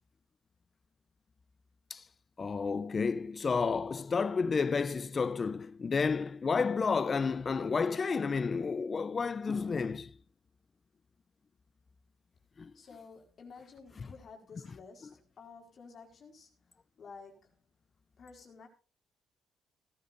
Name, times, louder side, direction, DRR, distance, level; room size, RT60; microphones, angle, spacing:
voice 1, 2.4-10.1 12.6-12.7, left 5 dB, 35° left, 0.8 m, -31 dB
voice 2, 12.7-16.5 17.0-17.6 18.2-18.7, left 5 dB, 55° left, 4.6 m, -52 dB
17.5 x 12.5 x 2.7 m
cardioid pair, 90°, 0 cm